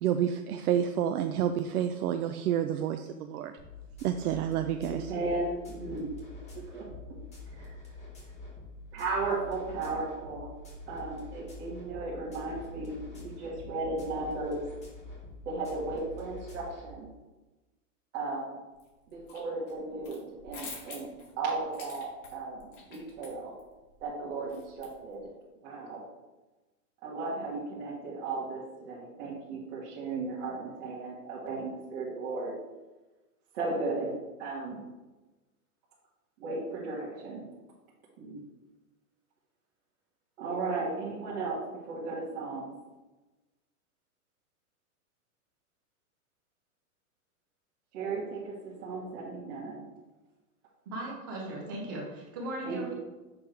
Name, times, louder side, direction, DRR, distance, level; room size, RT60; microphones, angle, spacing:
voice 1, 0.0-3.5 4.0-5.1, right 9 dB, 75° right, 7 dB, 0.6 m, -29 dB
sound 1, 3.6-16.9, left 3 dB, 15° left, 1.6 m, -46 dB
voice 2, 4.9-6.1 6.7-6.9 7.6-7.7 8.9-10.5 10.9-14.6 15.4-17.1 18.1-18.6 19.1-21.1 21.4-23.5 24.0-25.3 25.6-26.0 27.0-32.5 33.5-34.1 34.4-34.8 36.4-37.4 38.2-38.4 40.4-42.7 47.9-49.9 52.6-52.9, right 3 dB, 45° right, -6 dB, 1.6 m, -35 dB
sound 2, 18.8-19.4 19.7-25.2, left 4 dB, 50° left, 2.1 m, -47 dB
voice 3, 50.9-52.9, right 1 dB, 15° right, -2 dB, 0.4 m, -37 dB
6.6 x 3.5 x 4.5 m, 1.1 s
hypercardioid pair, 150°, 45 cm